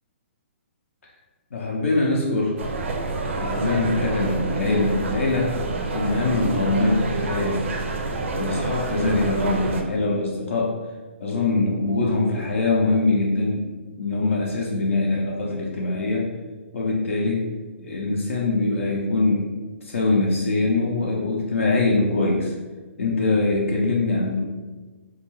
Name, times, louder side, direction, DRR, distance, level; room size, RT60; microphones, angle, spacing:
voice 1, 1.5-2.6 3.3-5.6 5.9-7.7 8.3-10.8 11.2-16.3 16.7-17.5 17.8-19.5 19.8-22.5 23.0-24.4, left 3 dB, 75° left, -3 dB, 0.5 m, -23 dB
sound 1, 2.6-9.8, right 3 dB, 70° right, 0.4 m, -27 dB
2.3 x 2.2 x 3.0 m, 1.3 s
hypercardioid pair, 155°, 7 cm